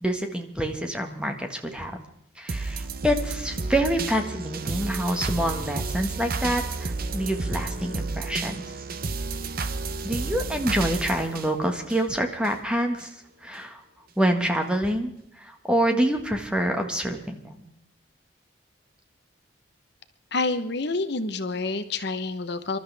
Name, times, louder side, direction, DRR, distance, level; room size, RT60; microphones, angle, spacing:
voice 1, 0.0-2.0 2.4-8.7 10.0-13.1 13.4-13.8 14.2-15.1 15.4-17.7, right 1 dB, 5° right, 4 dB, 1.6 m, -26 dB
sound 1, 2.5-12.5 13.0-13.1, right 3 dB, 50° right, 0.9 m, -31 dB
voice 2, 20.3-22.8, left 3 dB, 60° left, 9 dB, 1.0 m, -28 dB
26.0 x 12.5 x 3.5 m, 0.79 s
head